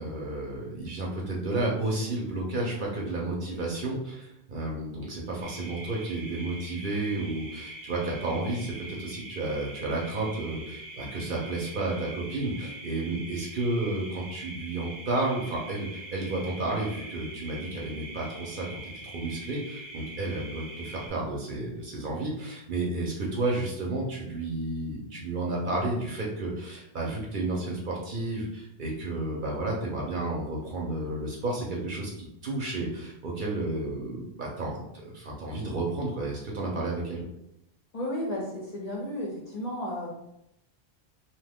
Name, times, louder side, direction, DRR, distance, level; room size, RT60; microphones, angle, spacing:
voice 1, 0.0-37.2, right 2 dB, 55° right, -2 dB, 0.7 m, -32 dB
sound 1, 5.4-21.1, right 2 dB, 90° right, 1.0 m, -43 dB
voice 2, 37.9-40.1, left 1 dB, 45° left, -4 dB, 0.6 m, -33 dB
2.8 x 2.2 x 3.4 m, 0.81 s
omnidirectional pair, 1.1 m